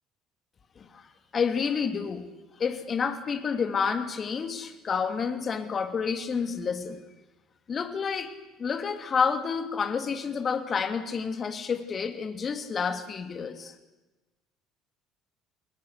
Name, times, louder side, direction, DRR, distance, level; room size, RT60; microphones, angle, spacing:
voice 1, 0.8-2.3 2.6-7.0 7.7-8.3 8.6-13.8, left 6 dB, 40° left, 9 dB, 3.0 m, -29 dB
29.0 x 21.0 x 8.2 m, 1.1 s
hypercardioid pair, 65°, 0 cm